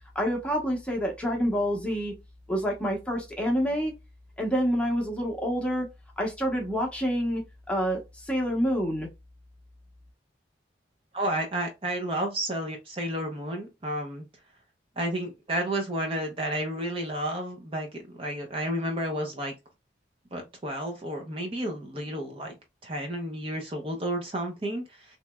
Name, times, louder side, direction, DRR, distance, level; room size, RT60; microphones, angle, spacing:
voice 1, 0.1-2.1 2.5-3.9 4.4-5.9 6.2-9.1, equal, 5° left, 0.9 m, -27 dB
voice 2, 11.1-14.2 15.0-19.5 20.3-22.5 22.8-25.2, right 1 dB, 30° right, 0.6 m, -31 dB
3.2 x 2.9 x 2.2 m
head